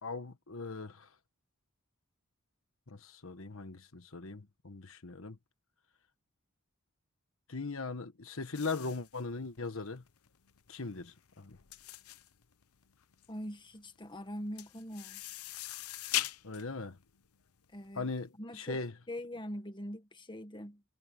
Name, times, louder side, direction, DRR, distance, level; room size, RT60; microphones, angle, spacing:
voice 1, 0.0-1.1 2.9-5.4 7.5-10.0 10.7-11.6 16.4-17.0 18.0-18.9, left 3 dB, 65° left, 1.3 m, -39 dB
sound 1, 8.5-18.2, left 14 dB, 90° left, 0.9 m, -41 dB
voice 2, 13.3-15.2 17.7-18.1 18.4-18.8 19.1-20.8, equal, 20° left, 1.8 m, -42 dB
head